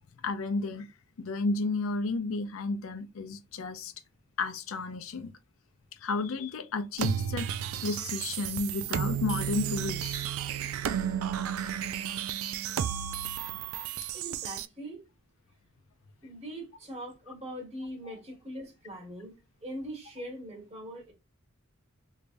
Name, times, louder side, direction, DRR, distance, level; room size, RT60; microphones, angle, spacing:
voice 1, 0.2-0.9 1.2-3.9 4.4-5.3 6.0-7.5 7.8-10.2 13.5-13.6 18.0-18.1, left 3 dB, 70° left, 0.5 m, -32 dB
sound 1, 7.0-14.7, right 9 dB, 80° right, 0.3 m, -33 dB
voice 2, 14.1-15.0 16.2-19.3 19.6-21.1, right 1 dB, 30° right, 1.4 m, -41 dB
3.3 x 3.1 x 2.6 m
head